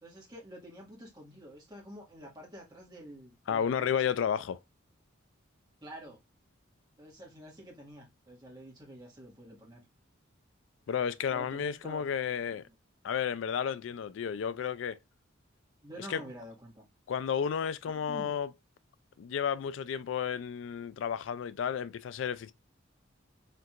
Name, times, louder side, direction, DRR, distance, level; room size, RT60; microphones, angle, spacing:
voice 1, 0.0-4.2 5.8-6.2 7.0-9.8 11.3-12.7 15.8-16.8 17.8-18.3, equal, 20° right, 1.7 m, -48 dB
voice 2, 3.5-4.6 10.9-12.6 13.0-15.0 16.0-16.2 17.1-18.5 19.2-22.5, left 7 dB, 70° left, 0.3 m, -32 dB
4.5 x 3.8 x 2.4 m
head